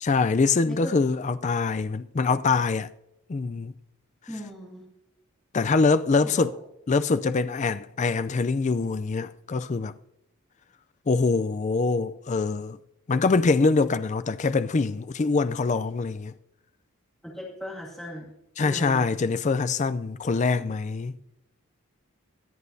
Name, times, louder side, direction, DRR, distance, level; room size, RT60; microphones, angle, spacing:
voice 1, 0.0-2.9 3.3-3.7 5.5-6.5 6.9-9.9 11.1-12.8 13.1-16.3 18.6-21.1, left 4 dB, 30° left, 0.4 m, -24 dB
voice 2, 0.6-0.9 4.3-4.9 6.2-6.4 17.3-18.3 18.6-19.1, equal, ahead, 2.1 m, -37 dB
23.5 x 8.4 x 2.7 m
head